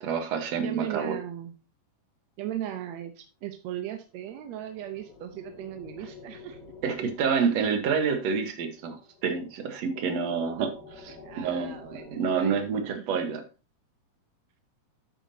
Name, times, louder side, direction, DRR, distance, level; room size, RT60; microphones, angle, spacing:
voice 1, 0.0-1.2 6.8-13.4, right 6 dB, 60° right, 7 dB, 2.2 m, -28 dB
voice 2, 0.6-1.5 2.4-6.6 7.4-7.5 11.2-13.1, right 11 dB, 75° right, 7 dB, 1.7 m, -37 dB
sound 1, 4.1-12.9, left 4 dB, 85° left, 3.9 m, -50 dB
10.0 x 8.1 x 2.8 m, 0.31 s
omnidirectional pair, 3.8 m